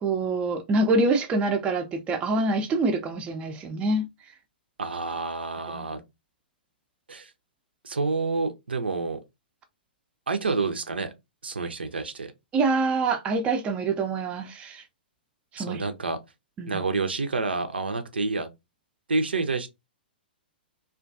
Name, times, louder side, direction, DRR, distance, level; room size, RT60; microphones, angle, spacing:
voice 1, 0.0-4.0 5.7-6.0 12.5-14.8 15.5-15.8 16.6-16.8, right 3 dB, 20° right, 0.4 m, -25 dB
voice 2, 4.8-6.0 7.1-7.3 7.8-9.2 10.3-11.1 11.4-12.3 15.6-16.2 16.7-18.5 19.1-19.7, right 3 dB, 80° right, 0.5 m, -28 dB
2.5 x 2.3 x 2.5 m
figure-of-eight pair, 115°, 6 cm